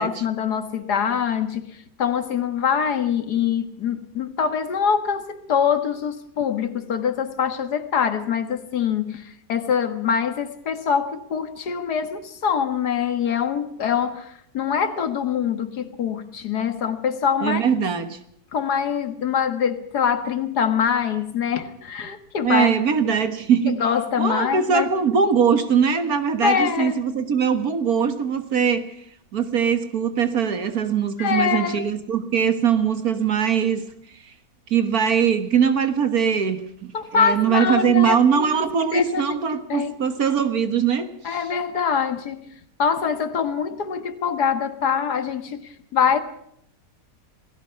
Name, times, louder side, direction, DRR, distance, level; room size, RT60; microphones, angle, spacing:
voice 1, 0.0-17.7 18.5-22.7 23.0-23.1 23.7-24.9 26.4-27.0 31.2-31.8 36.9-39.4 39.7-39.9 41.2-42.5 42.8-46.2, left 7 dB, 80° left, 2.1 m, -24 dB
voice 2, 17.4-18.2 22.4-23.8 24.2-28.9 29.3-33.8 34.2-34.3 34.7-41.4, right 7 dB, 65° right, 1.9 m, -21 dB
28.0 x 18.0 x 5.8 m
omnidirectional pair, 1.7 m